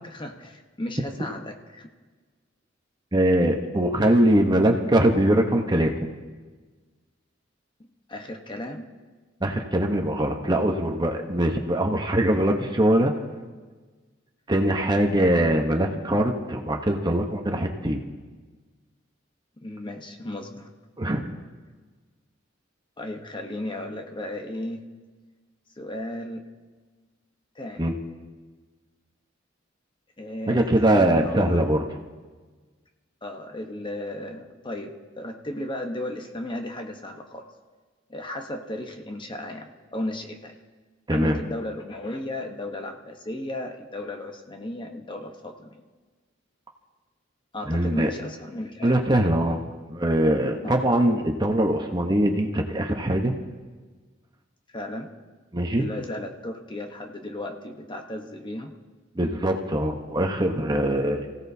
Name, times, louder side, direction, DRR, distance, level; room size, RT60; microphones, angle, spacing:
voice 1, 0.1-1.9 8.1-8.8 19.6-20.7 23.0-24.8 25.8-26.4 27.5-27.9 30.2-31.6 33.2-37.4 38.1-40.5 41.1-45.8 47.5-49.0 50.6-50.7 54.7-55.1 55.8-58.8, left 1 dB, 25° left, 3 dB, 1.0 m, -35 dB
voice 2, 3.1-5.9 9.4-13.1 14.5-18.0 21.0-21.3 27.8-27.9 30.5-31.8 41.1-41.4 47.7-48.1 48.8-49.6 49.9-53.3 55.5-55.9 59.2-61.3, right 1 dB, 20° right, 3 dB, 1.0 m, -22 dB
28.5 x 16.0 x 2.8 m, 1.4 s
head